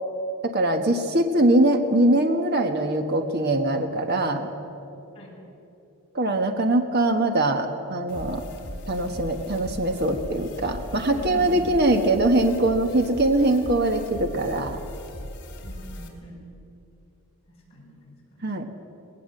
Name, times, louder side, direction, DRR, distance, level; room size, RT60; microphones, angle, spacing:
voice 1, 0.4-4.5 6.1-8.4 8.9-14.8 18.4-18.7, right 1 dB, 50° right, 5 dB, 1.4 m, -22 dB
sound 1, 8.1-16.1, left 1 dB, 55° left, 3.0 m, -38 dB
voice 2, 11.1-11.7 15.6-16.5 17.5-18.5, equal, 25° left, -4 dB, 5.8 m, -42 dB
19.5 x 17.5 x 7.8 m, 2.8 s
head